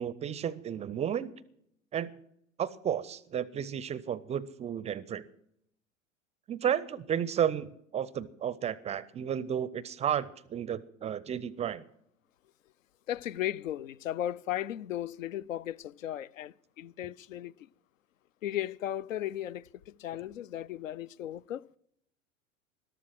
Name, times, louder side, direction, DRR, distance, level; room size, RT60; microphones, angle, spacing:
voice 1, 0.0-1.3 1.9-2.2 2.6-5.3 6.5-7.7 7.9-11.8, right 9 dB, 15° right, 0.4 m, -32 dB
voice 2, 13.1-17.7 18.4-21.7, left 12 dB, 70° left, 0.6 m, -36 dB
13.5 x 12.5 x 6.0 m
figure-of-eight pair, 85°, 40 cm